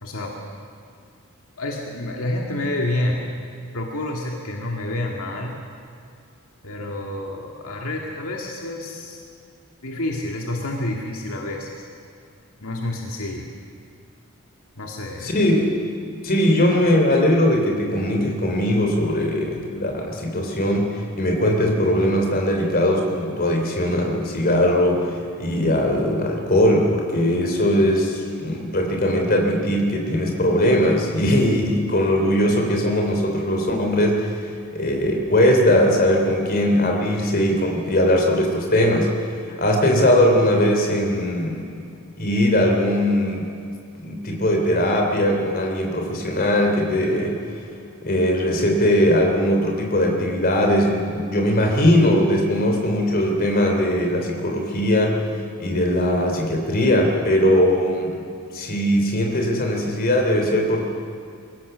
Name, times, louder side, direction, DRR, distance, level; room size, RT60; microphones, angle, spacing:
voice 1, 0.0-0.3 1.6-3.2 3.7-5.6 6.6-9.2 9.8-11.9 12.6-13.5 14.8-15.4, left 1 dB, 75° left, 0 dB, 2.1 m, -28 dB
voice 2, 15.2-15.8 16.2-39.1 39.5-41.9 42.2-43.4 44.0-47.4 48.0-55.2 55.6-58.2 58.5-60.8, left 1 dB, 45° left, 2 dB, 3.4 m, -20 dB
23.5 x 16.5 x 6.9 m, 2.3 s
head